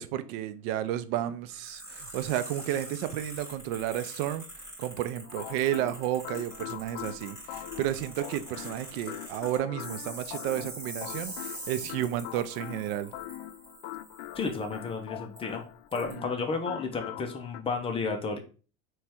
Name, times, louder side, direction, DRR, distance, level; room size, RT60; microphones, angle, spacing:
voice 1, 0.0-4.5 4.8-13.1 16.1-16.3, right 12 dB, 70° right, 0.5 m, -32 dB
sound 1, 1.5-14.9 15.4-15.5 15.9-16.1, right 1 dB, 10° right, 1.9 m, -44 dB
sound 2, 5.2-17.6, left 14 dB, 80° left, 0.5 m, -42 dB
voice 2, 14.4-15.6 15.9-18.4, left 4 dB, 20° left, 0.6 m, -32 dB
3.5 x 3.2 x 4.3 m
cardioid pair, 155°, 31 cm